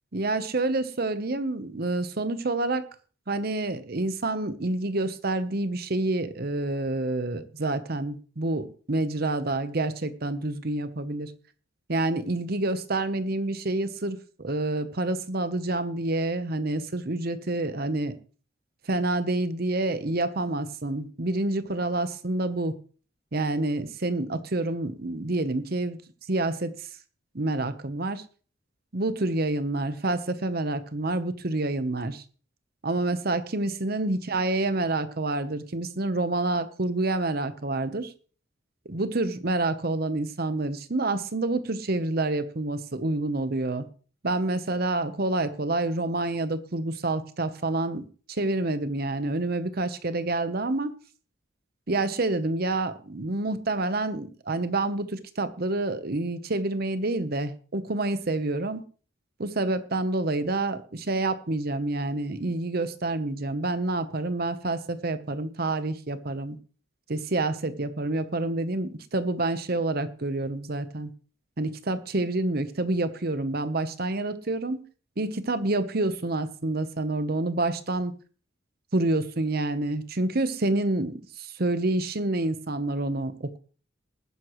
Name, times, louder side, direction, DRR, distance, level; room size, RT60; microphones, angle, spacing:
voice 1, 0.1-2.9 3.3-11.3 11.9-18.2 18.9-22.8 23.3-26.0 26.3-26.9 27.3-28.2 28.9-32.2 32.8-38.1 38.8-43.9 44.2-50.9 51.9-58.8 59.4-66.6 67.1-71.1 71.6-74.8 75.2-78.1 78.9-83.6, right 2 dB, 50° right, 0.9 m, -28 dB
19.5 x 9.8 x 3.1 m
head